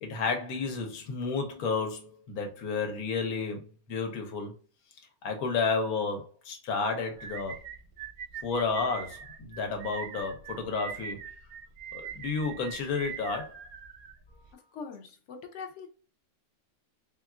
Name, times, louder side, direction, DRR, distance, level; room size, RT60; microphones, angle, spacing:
voice 1, 0.0-4.5 5.2-7.6 8.4-11.2 11.9-13.6, left 4 dB, 85° left, 1.2 m, -31 dB
sound 1, 7.2-14.5, right 7 dB, 90° right, 1.1 m, -42 dB
voice 2, 14.5-15.9, left 5 dB, 65° left, 0.8 m, -42 dB
3.5 x 2.2 x 2.4 m
omnidirectional pair, 1.5 m